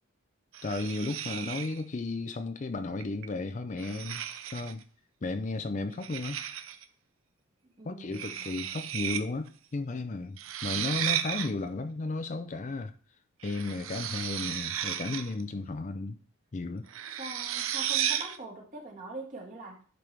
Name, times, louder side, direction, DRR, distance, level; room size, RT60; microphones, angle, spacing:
Scraping tiles, 0.5-1.8 3.0-3.3 3.8-4.8 6.0-6.8 8.1-9.2 9.5-9.6 10.4-11.5 13.4-15.4 16.9-18.4, right 10 dB, 80° right, 0.6 m, -34 dB
voice 1, 0.6-4.2 4.5-4.8 5.2-6.4 7.9-12.9 13.4-16.2 16.5-16.9, left 3 dB, 35° left, 0.5 m, -34 dB
voice 2, 7.6-8.4 17.2-19.8, right 2 dB, 35° right, 1.9 m, -43 dB
10.5 x 4.7 x 3.4 m
head